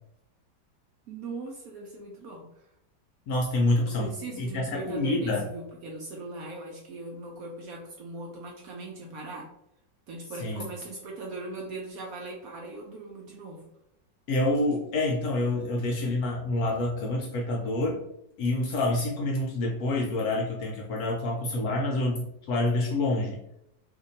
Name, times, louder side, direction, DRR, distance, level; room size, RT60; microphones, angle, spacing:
voice 1, 1.1-2.5 3.8-9.5 10.1-13.6, right 2 dB, 70° right, -1 dB, 0.9 m, -39 dB
voice 2, 3.3-4.1 4.4-5.4 10.4-10.6 14.3-18.0 18.4-23.4, left 2 dB, 70° left, -1 dB, 0.9 m, -27 dB
2.8 x 2.6 x 3.9 m, 0.81 s
omnidirectional pair, 2.0 m